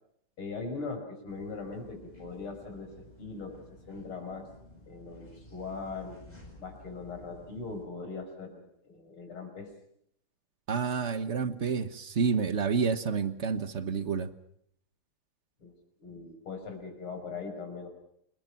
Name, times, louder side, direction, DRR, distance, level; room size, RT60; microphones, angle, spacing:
voice 1, 0.4-4.5 4.9-6.2 6.6-9.7 15.6-15.7 16.0-17.9, left 4 dB, 85° left, 6 dB, 6.4 m, -40 dB
sound 1, 1.3-7.9, left 1 dB, 20° left, 8.0 m, -53 dB
voice 2, 10.7-14.3, right 5 dB, 40° right, 12 dB, 1.3 m, -29 dB
29.0 x 21.5 x 6.0 m, 0.70 s
omnidirectional pair, 2.3 m